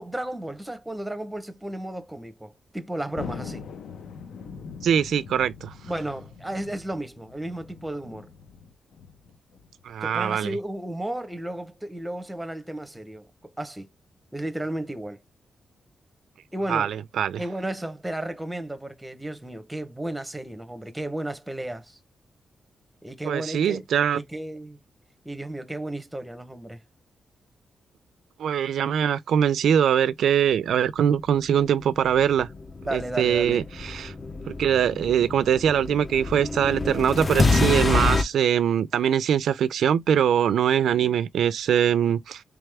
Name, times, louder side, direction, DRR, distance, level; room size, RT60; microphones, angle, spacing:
voice 1, 0.0-3.6 5.9-8.3 10.0-13.3 13.6-13.9 14.3-15.2 16.5-16.9 17.4-22.0 23.0-23.8 24.1-24.8 25.2-26.8 32.9-33.6, right 1 dB, 5° right, 0.7 m, -33 dB
Thunder, 3.2-10.0, left 6 dB, 80° left, 0.7 m, -42 dB
voice 2, 4.8-5.7 9.8-10.6 16.7-17.4 23.3-24.2 28.4-32.5 32.9-34.1 34.5-42.4, right 9 dB, 85° right, 0.4 m, -22 dB
sound 1, 31.8-38.2, left 3 dB, 30° left, 0.5 m, -26 dB
3.5 x 3.4 x 3.3 m
wide cardioid pair, 140°, 0 cm